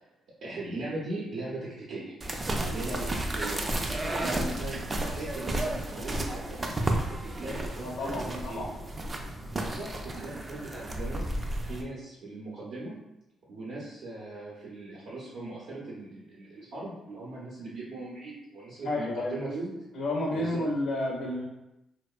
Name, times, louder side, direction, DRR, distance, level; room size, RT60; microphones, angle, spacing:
voice 1, 0.4-2.1 2.6-3.6 4.0-6.8 7.2-8.6 9.5-13.0 13.5-19.7 20.3-20.6, right 2 dB, 70° right, -7 dB, 0.6 m, -39 dB
sound 1, 2.2-11.8, right 1 dB, 30° right, 0.3 m, -32 dB
voice 2, 7.8-8.7 18.8-19.4 19.9-21.5, left 1 dB, 70° left, -2 dB, 0.4 m, -31 dB
2.8 x 2.1 x 2.3 m, 0.91 s
cardioid pair, 90°, 0 cm